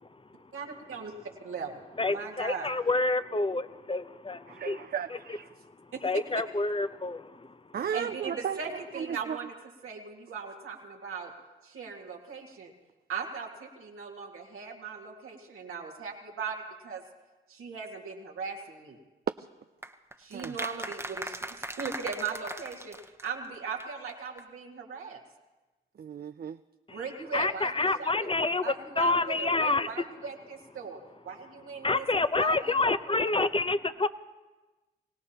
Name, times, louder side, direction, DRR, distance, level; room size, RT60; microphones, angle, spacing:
voice 1, 0.5-1.1 1.4-1.7 2.1-2.7 7.9-9.5 9.8-11.3 11.6-12.7 13.1-17.0 17.5-19.0 20.2-21.0 21.7-23.0 23.2-25.2 26.9-28.1 28.6-31.0 31.2-32.1 32.4-32.6, right 5 dB, 85° right, 0 dB, 2.0 m, -38 dB
voice 2, 2.0-4.8 6.0-7.6 26.9-27.0 27.3-29.9 31.8-34.1, left 3 dB, 25° left, 13 dB, 0.8 m, -28 dB
voice 3, 4.5-5.5 7.7-9.4 19.4-19.5 20.3-20.6 26.0-26.6, right 8 dB, 50° right, 11 dB, 0.4 m, -35 dB
sound 1, 19.8-23.5 23.8-23.9 24.1-24.2 24.4-24.5, right 1 dB, 10° right, 1.1 m, -39 dB
24.5 x 17.5 x 2.9 m, 1.2 s
supercardioid pair, 40°, 21 cm